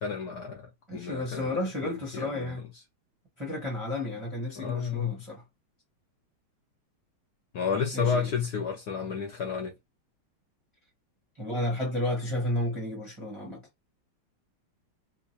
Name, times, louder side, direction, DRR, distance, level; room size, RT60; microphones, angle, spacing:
voice 1, 0.0-2.6 4.6-5.2 7.5-9.7, left 6 dB, 60° left, 1.1 m, -32 dB
voice 2, 0.9-2.6 3.4-5.4 7.9-8.3 11.4-13.6, left 1 dB, 20° right, 0.8 m, -32 dB
3.8 x 2.9 x 2.8 m
omnidirectional pair, 2.3 m